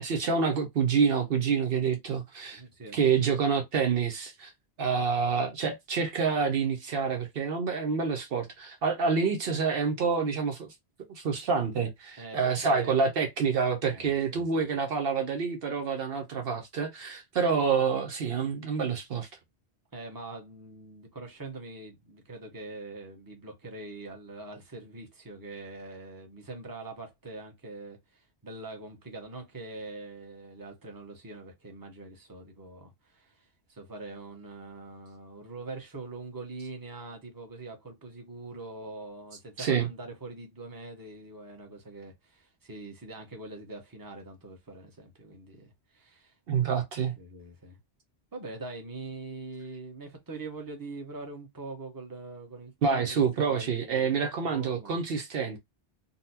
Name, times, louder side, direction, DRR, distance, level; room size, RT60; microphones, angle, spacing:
voice 1, 0.0-2.6 2.9-4.5 4.8-10.7 11.1-19.3 39.6-39.9 46.5-47.1 52.8-55.6, right 5 dB, 70° right, 0.8 m, -27 dB
voice 2, 2.4-3.0 12.2-12.9 13.9-14.5 19.9-46.3 47.2-47.8 48.3-55.0, right 3 dB, 20° right, 0.9 m, -43 dB
3.9 x 2.1 x 2.7 m
omnidirectional pair, 1.0 m